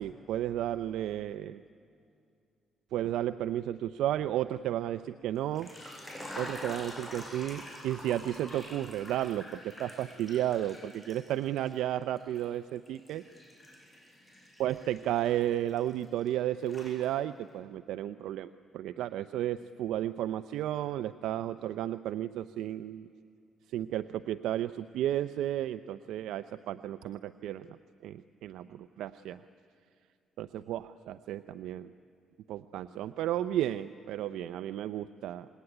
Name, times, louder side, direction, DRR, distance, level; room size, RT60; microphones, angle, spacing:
voice 1, 0.0-1.6 2.9-5.7 6.3-13.2 14.6-23.1 23.7-27.8 28.0-29.4 30.4-31.9 32.5-35.5, right 12 dB, 85° right, 12 dB, 0.5 m, -33 dB
sound 1, 5.4-11.8 12.2-16.3 16.6-17.4, left 1 dB, 15° left, 7.2 m, -46 dB
26.5 x 20.5 x 9.8 m, 2.5 s
cardioid pair, 90°, 0 cm